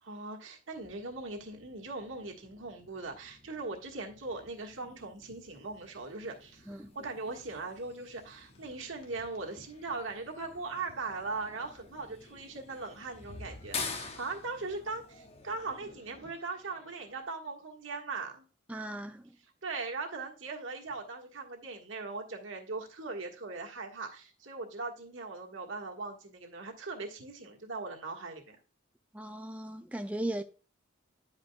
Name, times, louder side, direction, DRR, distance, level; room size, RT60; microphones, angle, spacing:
voice 1, 0.0-18.4 19.6-28.6, right 3 dB, 85° right, 1.5 m, -40 dB
sound 1, 0.7-16.3, left 1 dB, 80° left, 1.6 m, -57 dB
sound 2, 5.3-17.2, left 4 dB, 30° left, 0.8 m, -47 dB
voice 2, 18.7-19.3 29.1-30.4, right 1 dB, 5° right, 0.3 m, -37 dB
9.8 x 5.1 x 2.2 m
head